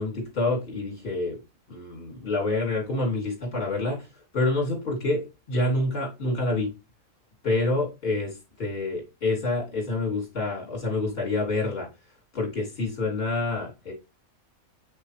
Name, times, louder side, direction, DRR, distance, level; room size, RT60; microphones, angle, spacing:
voice 1, 0.0-1.4 1.7-4.0 4.3-6.7 7.4-11.9 12.3-13.9, left 2 dB, 45° left, -1 dB, 3.2 m, -27 dB
6.1 x 5.9 x 3.3 m, 0.27 s
omnidirectional pair, 1.5 m